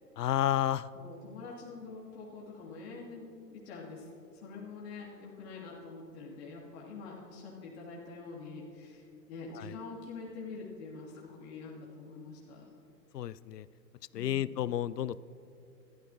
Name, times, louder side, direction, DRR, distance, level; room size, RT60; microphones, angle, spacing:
voice 1, 0.2-0.9 9.6-9.7 13.1-13.7 14.1-15.2, left 11 dB, 75° left, 19 dB, 0.5 m, -31 dB
voice 2, 0.9-12.7 14.1-14.5, left 4 dB, 40° left, -4 dB, 2.5 m, -45 dB
26.5 x 13.5 x 2.9 m, 2.5 s
figure-of-eight pair, 120°, 49 cm